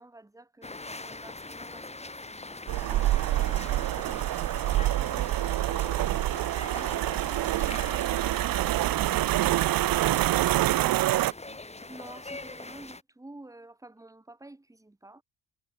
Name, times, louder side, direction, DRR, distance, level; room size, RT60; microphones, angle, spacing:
voice 1, 0.0-2.6 6.6-6.9 11.9-15.2, right 2 dB, 10° right, 1.3 m, -49 dB
sound 1, 0.6-13.0, left 2 dB, 15° left, 3.6 m, -43 dB
sound 2, 2.7-11.3, right 15 dB, 55° right, 0.6 m, -26 dB
voice 2, 3.8-3.9, right 5 dB, 35° right, 7.1 m, -51 dB
cardioid pair, 95°, 41 cm